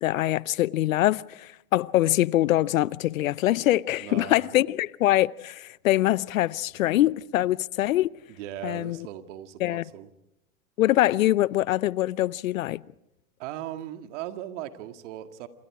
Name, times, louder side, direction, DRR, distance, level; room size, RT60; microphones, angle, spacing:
voice 1, 0.0-8.1 8.6-9.1 9.6-9.8 10.8-12.8, left 15 dB, 70° left, 0.8 m, -24 dB
voice 2, 4.0-4.5 8.4-10.1 13.4-15.5, right 12 dB, 55° right, 2.0 m, -38 dB
27.5 x 27.5 x 4.9 m
hypercardioid pair, 115°, 42 cm